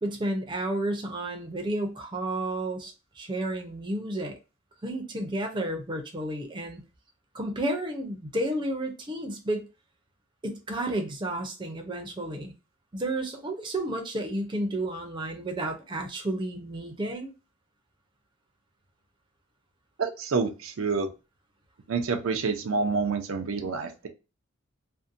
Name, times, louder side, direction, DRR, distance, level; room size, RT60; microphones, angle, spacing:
voice 1, 0.0-4.4 4.8-6.8 7.3-9.6 10.4-12.5 12.9-17.3, right 1 dB, 25° right, 0.5 m, -31 dB
voice 2, 20.0-21.1 21.9-24.1, right 4 dB, 85° right, 0.5 m, -28 dB
2.6 x 2.1 x 2.5 m
head